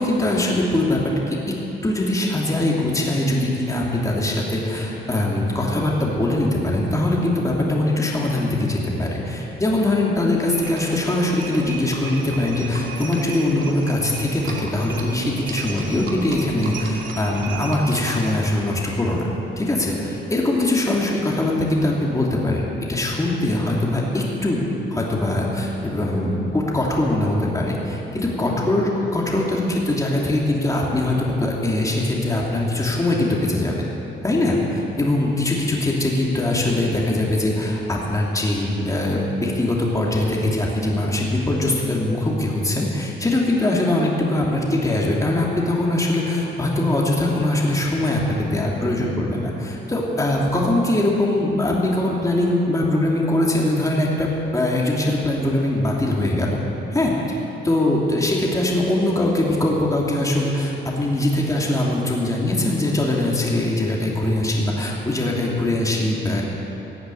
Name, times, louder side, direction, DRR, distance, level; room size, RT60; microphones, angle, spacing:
voice 1, 0.0-1.4 1.8-19.2 19.6-24.6 24.9-33.8 34.2-56.6 56.9-57.1 57.6-66.4, left 1 dB, 15° left, -3 dB, 2.8 m, -22 dB
Livestock farm animals working animals, 10.5-18.6, right 4 dB, 70° right, 2.5 m, -34 dB
15.5 x 8.0 x 9.9 m, 3.0 s
cardioid pair, 90°, 20 cm